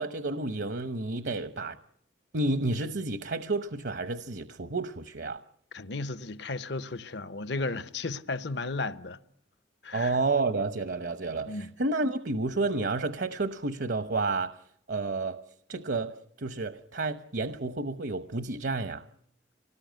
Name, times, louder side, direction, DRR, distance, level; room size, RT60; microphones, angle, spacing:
voice 1, 0.0-1.8 2.3-5.4 9.9-14.6 14.9-15.4 15.7-19.0, right 3 dB, 65° right, 0.9 m, -30 dB
voice 2, 5.7-9.2 9.8-10.2 11.5-11.7, left 3 dB, 70° left, 1.0 m, -34 dB
24.5 x 18.5 x 9.2 m
head